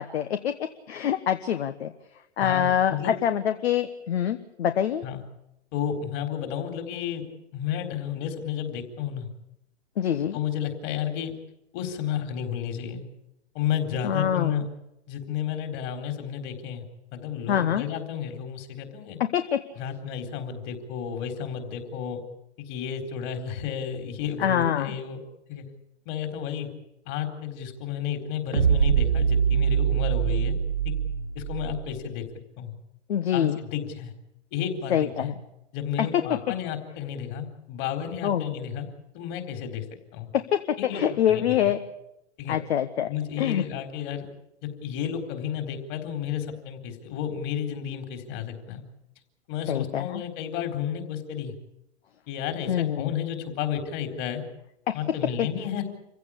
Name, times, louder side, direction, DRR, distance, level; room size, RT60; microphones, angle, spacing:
voice 1, 0.0-1.9 2.4-5.0 10.0-10.4 14.0-14.6 17.5-17.8 19.3-19.6 24.4-24.9 33.1-33.6 34.9-35.3 36.0-36.2 38.2-38.5 40.3-41.8 42.5-43.1 43.4-43.6 49.7-50.2 52.7-53.1 54.9-55.0 55.4-55.5, left 9 dB, 60° left, 9 dB, 1.4 m, -25 dB
voice 2, 2.4-3.1 5.0-5.2 5.7-7.2 7.5-9.3 10.3-11.3 11.7-13.0 13.5-14.7 15.1-16.8 17.1-19.2 19.8-22.2 22.6-25.2 25.5-25.6 26.1-26.7 27.1-30.6 30.8-30.9 31.3-32.2 32.6-32.7 33.3-34.1 34.5-35.3 35.7-38.9 39.1-39.8 40.1-40.3 40.8-41.0 41.3-41.7 42.4-42.6 43.1-44.3 44.6-48.8 49.5-51.5 52.3-54.4 54.9-55.8, left 9 dB, 40° left, 6 dB, 4.2 m, -32 dB
sound 1, 28.5-32.0, right 8 dB, 70° right, 2.3 m, -23 dB
26.5 x 16.0 x 8.7 m, 0.86 s
figure-of-eight pair, 110°, 36 cm